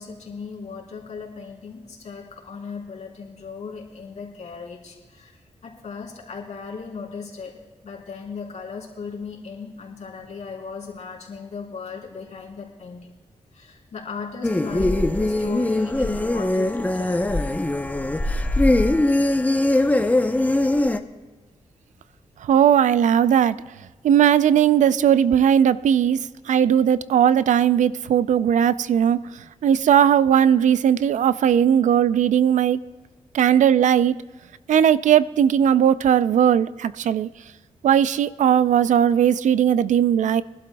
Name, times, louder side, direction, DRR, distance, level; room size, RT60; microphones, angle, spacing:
voice 1, 0.0-5.3 5.6-13.1 13.5-17.3, left 5 dB, 70° left, 3.4 m, -37 dB
sound 1, 14.4-21.0, left 1 dB, 15° left, 0.7 m, -21 dB
voice 2, 22.4-23.6 24.0-32.8 33.3-34.2 34.7-37.3 37.8-40.4, right 9 dB, 85° right, 0.4 m, -18 dB
24.0 x 11.5 x 2.3 m
cardioid pair, 85°, 12 cm